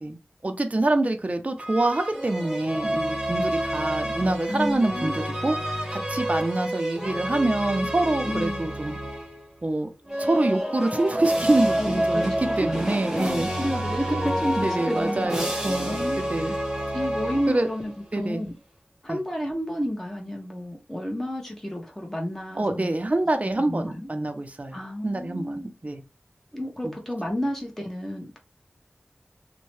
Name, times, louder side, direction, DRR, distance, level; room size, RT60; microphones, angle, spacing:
voice 1, 0.4-8.9 9.6-9.9 10.2-13.5 14.6-16.5 17.5-17.7 18.1-18.4 19.1-19.2 22.6-26.0 26.8-26.9, right 2 dB, 40° right, 0.5 m, -26 dB
sound 1, 1.6-9.4 10.0-18.0, right 1 dB, 15° right, 1.1 m, -29 dB
voice 2, 4.5-5.2 8.2-8.7 11.8-16.6 16.9-18.6 19.0-22.9 23.4-24.1 24.7-25.7 26.5-28.4, equal, 10° left, 1.0 m, -31 dB
2.7 x 2.2 x 3.1 m
wide cardioid pair, 45°, 4 cm